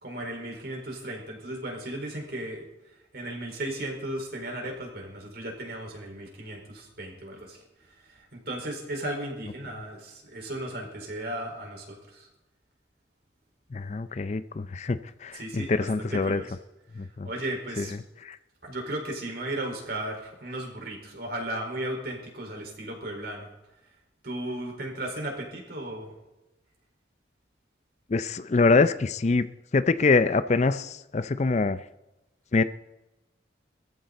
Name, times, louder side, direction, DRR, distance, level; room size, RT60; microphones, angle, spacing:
voice 1, 0.0-2.6 3.1-12.3 15.3-16.6 16.9-17.9 18.6-23.5 24.2-26.1, right 1 dB, 55° right, 0 dB, 4.5 m, -35 dB
voice 2, 13.7-16.4 17.0-17.3 17.8-17.9 18.2-18.4 28.1-29.5 29.7-31.8 32.5-32.6, left 3 dB, 35° left, 13 dB, 0.4 m, -24 dB
21.5 x 14.0 x 4.1 m, 0.98 s
head